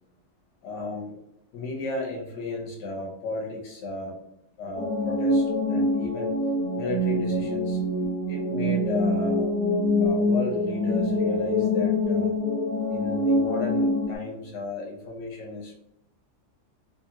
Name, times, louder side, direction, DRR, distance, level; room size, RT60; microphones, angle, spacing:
voice 1, 0.6-1.1 1.5-4.1 4.6-6.3 6.7-7.8 8.3-9.5 10.0-12.3 12.9-15.7, left 2 dB, 85° left, -1 dB, 1.2 m, -34 dB
sound 1, 4.7-14.2, left 1 dB, 85° right, 1.3 m, -25 dB
2.8 x 2.8 x 2.2 m, 0.77 s
omnidirectional pair, 1.8 m